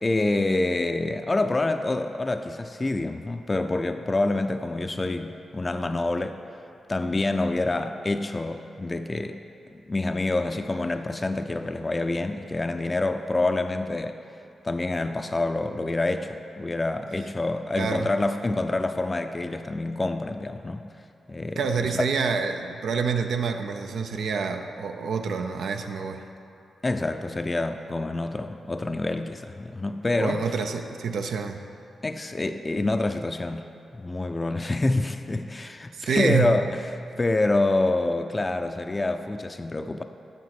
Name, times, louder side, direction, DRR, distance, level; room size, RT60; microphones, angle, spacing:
voice 1, 0.0-6.4 6.9-9.4 9.7-14.1 14.6-20.8 21.3-22.1 26.8-30.4 32.0-33.6 34.0-36.8 37.2-40.0, left 2 dB, 30° left, 7 dB, 0.4 m, -27 dB
voice 2, 17.8-18.1 21.6-26.2 30.2-31.7 35.9-36.6, right 5 dB, 80° right, 6 dB, 0.5 m, -27 dB
7.3 x 5.2 x 5.9 m, 2.7 s
cardioid pair, 60°, 0 cm